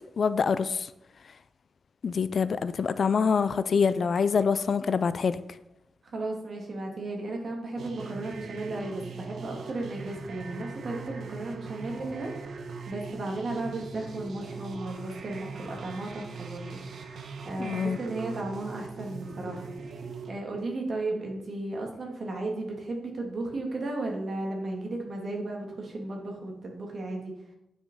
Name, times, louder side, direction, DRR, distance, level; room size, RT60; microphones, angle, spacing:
voice 1, 0.2-0.9 2.0-5.4 17.6-18.0, left 5 dB, 50° left, 0.4 m, -25 dB
voice 2, 6.0-12.6 12.9-16.8 17.1-27.3, right 2 dB, 50° right, 2.3 m, -35 dB
sound 1, 7.8-20.3, right 4 dB, 80° right, 1.1 m, -41 dB
9.3 x 6.1 x 5.4 m
wide cardioid pair, 160°, 0 cm